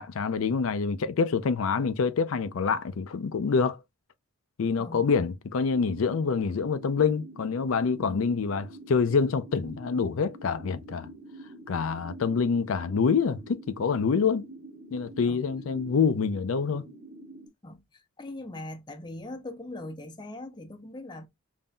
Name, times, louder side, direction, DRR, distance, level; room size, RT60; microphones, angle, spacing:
voice 1, 0.0-3.8 4.6-11.1 11.7-14.5 14.9-16.8, left 5 dB, 75° left, 0.4 m, -26 dB
voice 2, 4.8-5.1 8.1-8.4 15.2-15.4 17.6-21.3, left 1 dB, 20° left, 0.6 m, -41 dB
sound 1, 5.7-17.5, right 1 dB, 45° right, 1.4 m, -46 dB
5.3 x 2.6 x 2.2 m
head